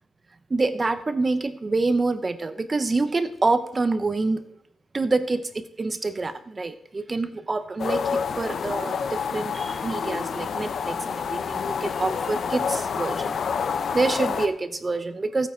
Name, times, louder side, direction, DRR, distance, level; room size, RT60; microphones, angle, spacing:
voice 1, 0.5-4.4 4.9-13.3 13.9-15.5, right 3 dB, 25° right, 11 dB, 0.8 m, -26 dB
sound 1, 7.8-14.5, left 6 dB, 55° left, 0.7 m, -28 dB
15.5 x 8.8 x 4.5 m, 0.75 s
wide cardioid pair, 135°, 0 cm